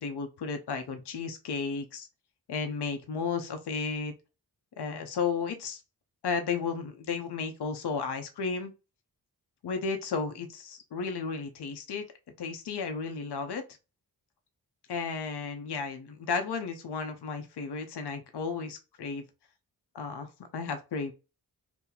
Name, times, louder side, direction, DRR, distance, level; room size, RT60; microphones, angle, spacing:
voice 1, 0.0-2.1 2.5-4.1 4.8-5.8 6.2-8.7 9.6-12.1 12.4-13.6 14.9-19.2 19.9-21.1, left 5 dB, 75° left, 6 dB, 0.7 m, -33 dB
2.9 x 2.0 x 3.8 m, 0.28 s
wide cardioid pair, 80°, 40 cm